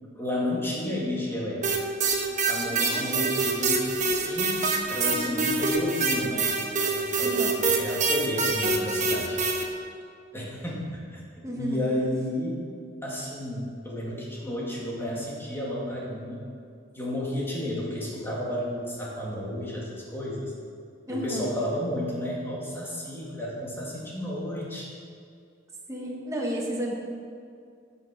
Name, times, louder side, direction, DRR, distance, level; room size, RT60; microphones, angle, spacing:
voice 1, 0.2-1.9 2.5-6.6 6.8-7.3 7.6-9.4 10.3-12.6 13.0-16.4 16.9-20.5 21.1-24.9, left 1 dB, 15° left, -5 dB, 2.2 m, -32 dB
sound 1, 1.6-9.6, right 4 dB, 40° right, 1.1 m, -25 dB
voice 2, 2.7-3.3 7.2-7.6 11.4-12.1 21.1-21.6 25.9-26.9, right 1 dB, 15° right, -3 dB, 1.5 m, -32 dB
10.5 x 6.7 x 6.0 m, 2.3 s
head